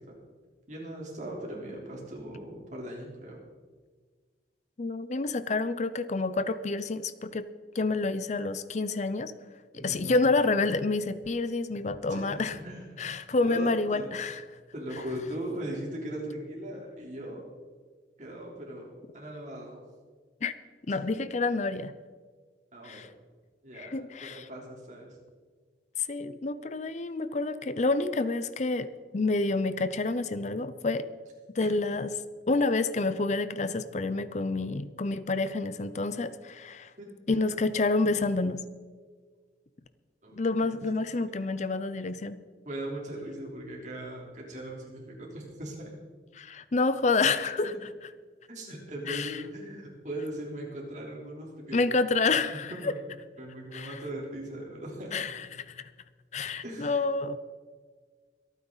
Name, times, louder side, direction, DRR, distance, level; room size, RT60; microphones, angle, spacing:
voice 1, 0.7-3.4 9.8-10.2 12.1-12.8 13.4-14.4 14.7-17.5 18.2-19.8 20.9-21.0 22.7-23.1 23.6-25.1 31.6-31.7 37.0-37.1 37.4-37.5 40.2-40.5 42.7-45.9 48.5-51.8 52.3-53.0 53.4-55.1 56.6-57.0, right 1 dB, 45° right, -2 dB, 3.6 m, -39 dB
voice 2, 4.8-7.5 7.7-9.3 9.7-12.6 13.0-14.4 20.4-20.5 20.9-21.9 22.8-23.1 23.7-24.5 26.0-28.9 29.1-31.1 31.5-32.1 32.5-36.9 37.3-38.6 40.3-42.4 46.3-47.7 49.1-49.4 51.7-52.9 53.7-54.0 55.1-55.8 56.3-57.4, left 3 dB, 40° left, 13 dB, 0.6 m, -28 dB
24.5 x 9.3 x 4.0 m, 1.5 s
head